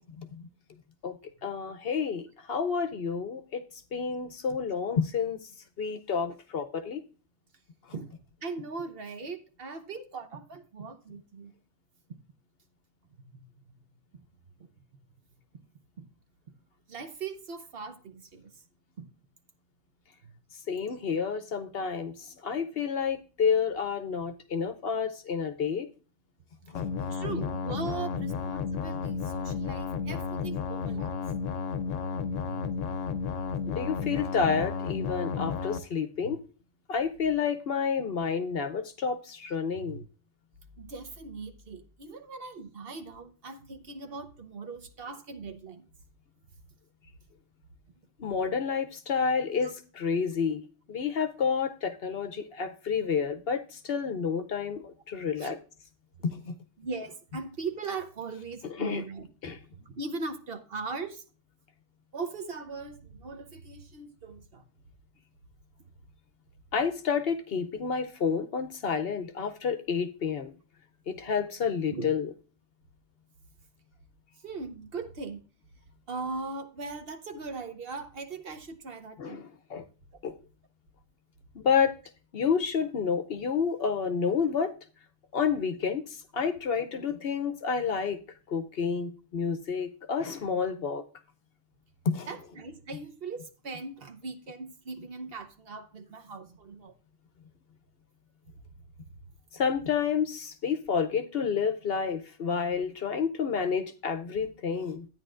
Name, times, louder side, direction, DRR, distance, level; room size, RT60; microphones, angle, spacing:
voice 1, 0.2-0.5 1.0-3.6 3.9-5.4 5.8-7.0 20.7-25.9 26.7-26.9 33.7-36.4 36.9-40.0 48.2-55.6 56.2-56.5 58.6-59.0 59.4-59.6 66.7-70.5 71.1-72.3 79.2-79.8 80.2-80.3 81.6-81.9 82.3-84.7 85.3-88.2 88.5-91.0 92.1-92.3 99.5-105.1, left 6 dB, 60° left, 0.8 m, -30 dB
voice 2, 8.4-11.5 13.3-13.4 16.0-16.1 16.9-18.4 19.0-19.1 27.1-31.1 32.4-32.6 36.2-36.3 39.8-40.0 40.8-45.8 55.4-55.6 56.8-59.6 59.9-61.2 62.1-64.6 71.9-72.1 74.4-75.4 76.1-79.4 92.3-96.9, right 4 dB, 55° right, 1.1 m, -39 dB
sound 1, 26.7-35.8, left 5 dB, 90° left, 1.0 m, -32 dB
12.5 x 9.3 x 2.5 m
omnidirectional pair, 1.3 m